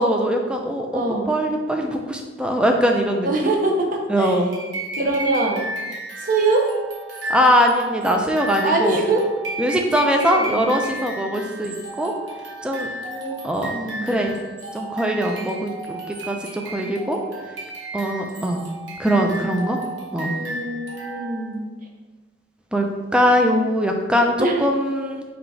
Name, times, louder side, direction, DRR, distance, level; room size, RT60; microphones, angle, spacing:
voice 1, 0.0-3.3 4.1-4.5 7.3-9.0 9.6-12.1 12.6-12.9 13.4-13.8 14.0-14.3 14.7-17.2 17.9-18.6 19.0-19.8 20.1-20.3 22.7-22.9 23.1-25.2, equal, 5° right, 2 dB, 0.3 m, -21 dB
voice 2, 0.9-1.3 3.2-4.4 5.0-5.7 6.2-6.7 8.6-9.2 10.2-10.6 13.1-13.4 13.6-14.2 20.2-21.7 24.4-24.7, right 2 dB, 45° right, 0 dB, 0.6 m, -23 dB
sound 1, 4.5-21.6, right 1 dB, 75° right, 1.0 m, -33 dB
3.8 x 2.3 x 4.5 m, 1.3 s
head